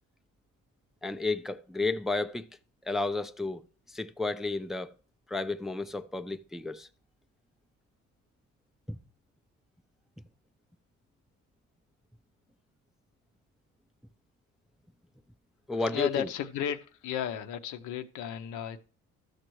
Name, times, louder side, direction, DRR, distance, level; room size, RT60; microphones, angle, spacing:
voice 1, 1.0-2.5 2.8-4.9 5.3-6.9 8.9-9.0 15.7-16.3, left 3 dB, ahead, 0.3 m, -32 dB
voice 2, 15.7-18.8, left 9 dB, 85° left, 0.7 m, -34 dB
13.5 x 6.5 x 3.1 m
cardioid pair, 90°, 30 cm